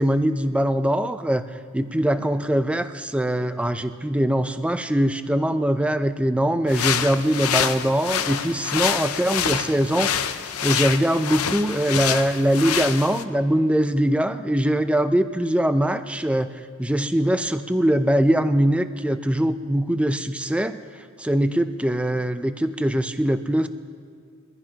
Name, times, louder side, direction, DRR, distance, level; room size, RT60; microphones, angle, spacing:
voice 1, 0.0-1.4 1.7-16.5 16.8-20.8 21.2-23.7, right 1 dB, 5° right, 9 dB, 0.5 m, -22 dB
sound 1, 6.7-13.2, left 8 dB, 85° left, 0.7 m, -26 dB
23.5 x 15.0 x 2.9 m, 2.3 s
head